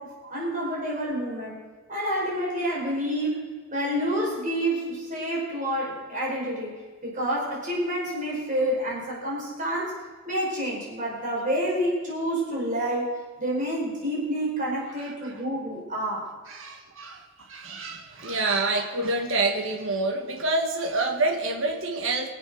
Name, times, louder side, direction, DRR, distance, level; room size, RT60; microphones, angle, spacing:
voice 1, 0.0-1.6 1.9-3.4 3.7-10.0 10.2-16.3, equal, 35° right, -4 dB, 5.0 m, -28 dB
voice 2, 16.5-22.3, right 2 dB, 65° right, 2 dB, 1.7 m, -27 dB
23.5 x 7.9 x 6.3 m, 1.5 s
head